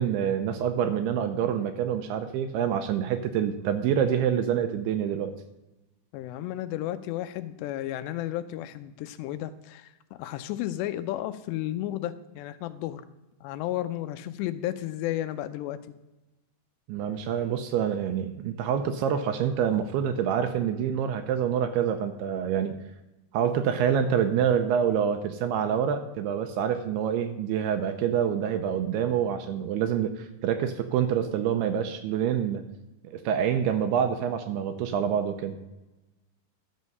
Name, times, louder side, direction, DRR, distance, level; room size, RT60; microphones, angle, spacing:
voice 1, 0.0-5.3 16.9-22.8 23.3-32.6 33.0-35.5, right 8 dB, 80° right, 7 dB, 2.5 m, -26 dB
voice 2, 6.1-9.9 10.2-13.0 13.4-15.8, left 13 dB, 85° left, 11 dB, 2.7 m, -33 dB
12.0 x 6.3 x 5.4 m, 1.0 s
omnidirectional pair, 5.0 m